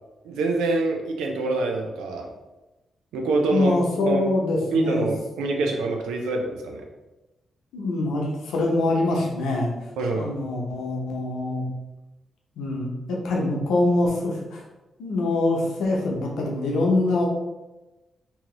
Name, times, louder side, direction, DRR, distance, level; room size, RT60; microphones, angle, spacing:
voice 1, 0.2-2.3 3.1-3.7 4.0-4.2 4.7-6.8 10.0-10.3, right 3 dB, 85° right, 2 dB, 0.5 m, -25 dB
voice 2, 3.5-5.1 7.7-9.7 10.1-11.7 12.6-14.6 15.0-17.3, left 2 dB, 80° left, -1 dB, 0.7 m, -24 dB
2.9 x 2.8 x 3.7 m, 1.1 s
hypercardioid pair, 45°, 0 cm